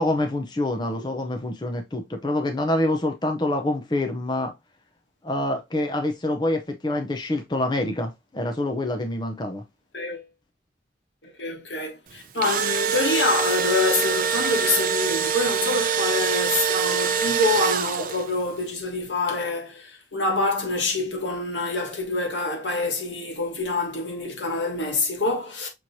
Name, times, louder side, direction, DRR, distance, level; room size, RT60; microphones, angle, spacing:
voice 1, 0.0-4.5 5.2-9.6, left 1 dB, 25° left, 0.6 m, -26 dB
voice 2, 9.9-10.3 11.2-25.7, left 3 dB, 90° left, 1.4 m, -26 dB
Engine / Drill, 12.2-18.4, right 7 dB, 50° right, 0.5 m, -24 dB
6.1 x 3.0 x 2.6 m
head